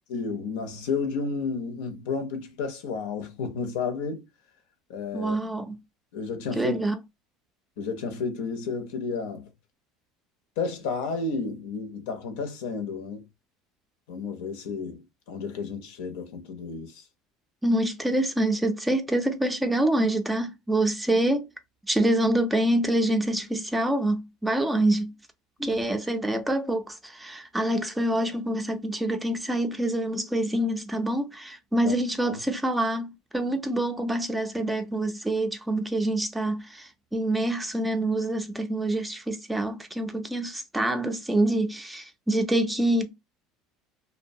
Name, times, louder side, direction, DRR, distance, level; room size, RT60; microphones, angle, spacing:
voice 1, 0.1-4.3 4.9-5.4 6.1-6.8 7.8-9.5 10.6-13.3 14.1-17.0 25.7-25.8 31.8-32.0 32.2-32.4, left 4 dB, 85° left, 0.7 m, -32 dB
voice 2, 5.1-5.8 6.6-6.9 17.6-21.5 21.9-25.1 25.6-43.1, right 1 dB, 5° right, 0.4 m, -26 dB
2.6 x 2.1 x 2.6 m
cardioid pair, 140°, 0 cm